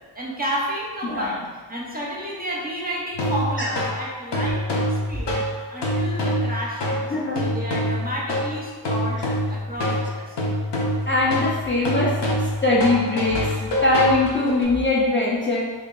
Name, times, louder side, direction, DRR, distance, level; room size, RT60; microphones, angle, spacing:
voice 1, 0.1-7.0 7.4-9.2 9.5-10.4, equal, 20° right, -4 dB, 0.7 m, -31 dB
sound 1, 3.1-14.6, equal, 60° left, 0.8 m, -25 dB
voice 2, 7.1-7.4 11.1-12.2 12.6-15.6, left 2 dB, 25° left, -6 dB, 0.5 m, -21 dB
3.1 x 2.6 x 3.8 m, 1.4 s
wide cardioid pair, 120°, 46 cm